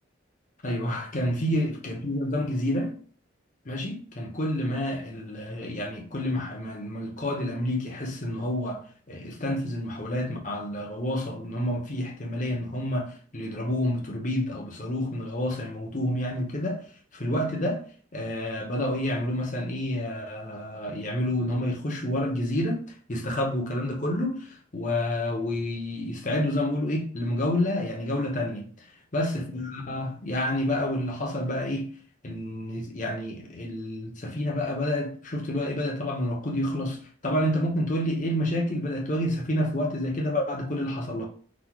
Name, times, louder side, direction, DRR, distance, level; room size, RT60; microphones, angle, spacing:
voice 1, 0.6-3.0 3.6-16.8 17.1-17.8 18.1-28.7 29.1-32.0 32.2-41.3, left 1 dB, 40° left, 0.9 m, -29 dB
4.1 x 2.5 x 4.6 m
head